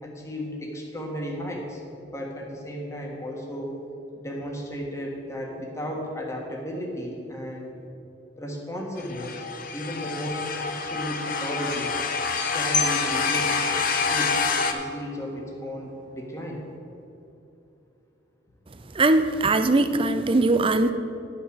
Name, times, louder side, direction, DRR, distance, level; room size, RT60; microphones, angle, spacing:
voice 1, 0.0-1.8 2.1-3.8 4.1-7.7 8.4-9.5 9.7-11.9 12.5-13.6 14.1-16.6, equal, 15° left, -1 dB, 1.6 m, -34 dB
sound 1, 9.0-14.7, left 5 dB, 45° left, 0.8 m, -27 dB
sound 2, 12.4-14.8, left 4 dB, 60° left, 1.4 m, -31 dB
voice 2, 18.9-20.9, right 2 dB, 30° right, 10 dB, 0.5 m, -20 dB
11.5 x 6.0 x 6.4 m, 2.8 s
head